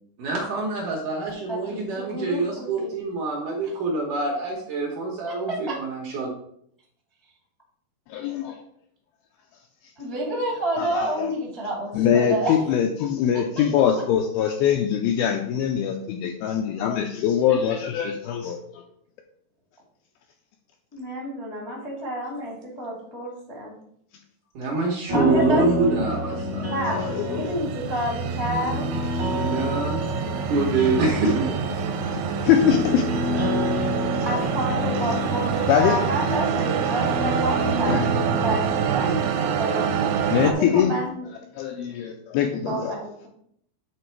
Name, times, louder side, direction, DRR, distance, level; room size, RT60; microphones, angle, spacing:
voice 1, 0.2-6.3 24.6-26.7 29.2-30.0 30.5-31.5, right 3 dB, 65° right, -2 dB, 2.1 m, -25 dB
voice 2, 1.5-3.0 5.7-5.8 10.0-12.7 13.3-13.6 20.9-23.7 25.1-25.6 26.6-28.9 34.2-41.3 42.6-43.3, right 1 dB, 25° left, -4 dB, 0.6 m, -29 dB
voice 3, 8.1-8.6 10.8-11.3 12.0-18.6 26.9-27.5 32.4-33.0 35.7-36.0 37.9-38.1 40.3-40.9 41.6-42.9, left 9 dB, 85° left, 4 dB, 2.2 m, -23 dB
sound 1, 25.1-38.8, left 1 dB, 50° right, 1.4 m, -29 dB
sound 2, 26.4-40.5, right 7 dB, 85° right, 2.6 m, -27 dB
8.4 x 3.9 x 4.5 m, 0.69 s
omnidirectional pair, 4.8 m